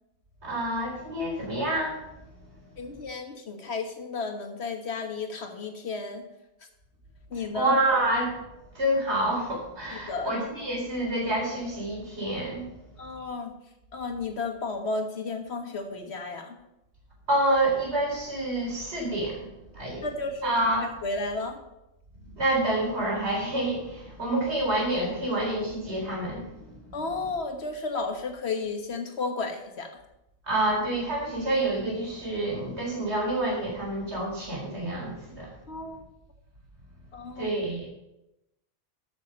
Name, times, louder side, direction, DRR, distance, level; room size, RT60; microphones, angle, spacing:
voice 1, 0.4-2.0 7.5-8.4 8.7-12.6 17.3-19.5 19.7-20.0 20.4-20.9 22.4-26.7 30.5-35.5 37.4-37.9, right 1 dB, 85° right, -2 dB, 4.2 m, -28 dB
voice 2, 2.8-6.3 7.3-7.7 9.9-10.4 13.0-13.6 13.9-16.5 20.0-20.5 20.8-21.6 26.9-29.9 35.7-36.0 37.1-37.5, left 3 dB, 75° left, 5 dB, 1.7 m, -33 dB
13.5 x 6.3 x 5.3 m, 0.91 s
omnidirectional pair, 1.1 m